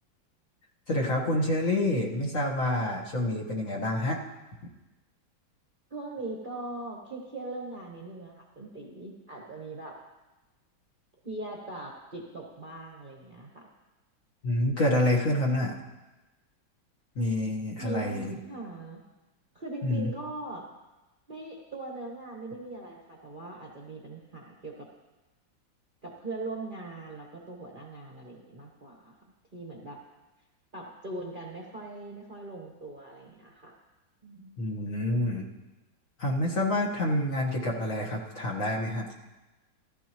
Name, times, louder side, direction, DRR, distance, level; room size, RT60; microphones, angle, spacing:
voice 1, 0.9-4.2 14.4-15.7 17.2-18.3 19.8-20.1 34.6-35.5 36.2-39.1, left 1 dB, 45° left, -2 dB, 1.7 m, -27 dB
voice 2, 5.9-10.0 11.2-13.7 17.8-19.0 19.5-20.7 21.3-24.9 26.0-29.2 29.5-30.0 30.7-33.7 34.2-34.6, right 2 dB, 30° right, -2 dB, 1.1 m, -40 dB
14.5 x 14.0 x 3.0 m, 1.1 s
omnidirectional pair, 2.2 m